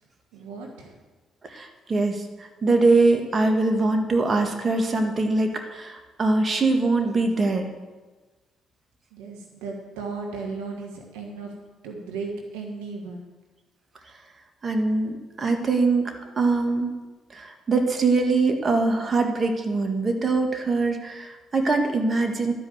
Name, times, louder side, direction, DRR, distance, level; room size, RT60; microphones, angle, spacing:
voice 1, 0.3-1.0 9.1-11.5 11.8-13.2, right 4 dB, 85° right, 2 dB, 1.3 m, -35 dB
voice 2, 1.5-7.7 14.6-16.9 17.3-22.5, right 3 dB, 40° right, 4 dB, 1.7 m, -23 dB
12.5 x 5.4 x 7.9 m, 1.3 s
hypercardioid pair, 55°, 0 cm